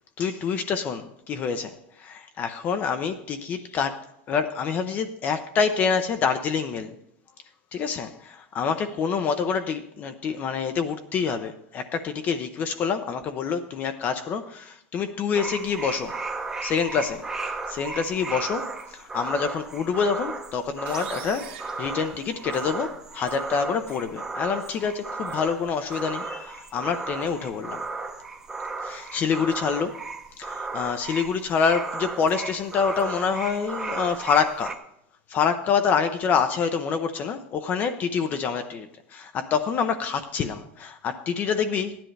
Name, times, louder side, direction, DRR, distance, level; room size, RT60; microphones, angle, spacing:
voice 1, 0.2-7.0 7.7-16.2 16.6-17.2 17.7-27.8 28.8-30.0 30.4-34.8 35.3-42.0, left 6 dB, 30° left, 0.6 m, -27 dB
sound 1, 15.3-34.8, right 3 dB, 10° right, 0.8 m, -35 dB
sound 2, 20.9-22.8, right 12 dB, 65° right, 1.0 m, -44 dB
15.0 x 10.5 x 3.2 m
supercardioid pair, 160°, 6 cm